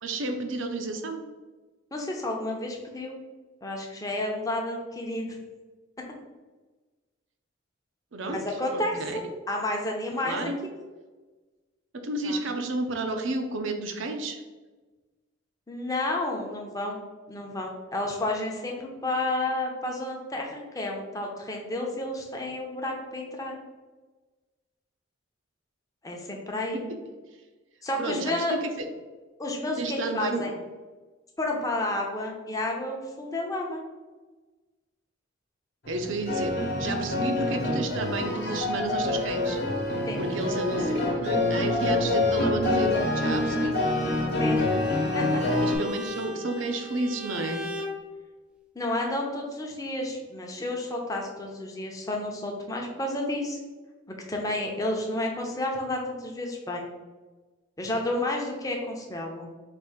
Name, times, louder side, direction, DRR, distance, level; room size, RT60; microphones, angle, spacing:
voice 1, 0.0-1.2 8.1-8.4 8.7-9.2 10.2-10.6 11.9-14.4 26.7-27.0 28.0-28.9 29.8-30.5 35.9-39.6 40.2-43.8 45.2-47.6, right 2 dB, 70° right, 5 dB, 0.6 m, -31 dB
voice 2, 1.9-3.2 3.6-5.4 8.3-8.9 9.5-10.4 12.2-12.4 15.7-17.0 17.3-23.5 26.0-26.9 27.8-28.5 29.4-30.5 31.4-33.8 40.1-40.2 44.4-44.7 45.1-45.2 48.7-53.6 54.3-57.0 57.8-59.5, left 1 dB, 15° left, 0 dB, 0.7 m, -31 dB
sound 1, 35.8-45.7, left 2 dB, 50° left, 1.0 m, -26 dB
Bowed string instrument, 44.3-48.0, left 1 dB, 5° right, 0.3 m, -38 dB
4.2 x 2.6 x 4.9 m, 1.3 s
head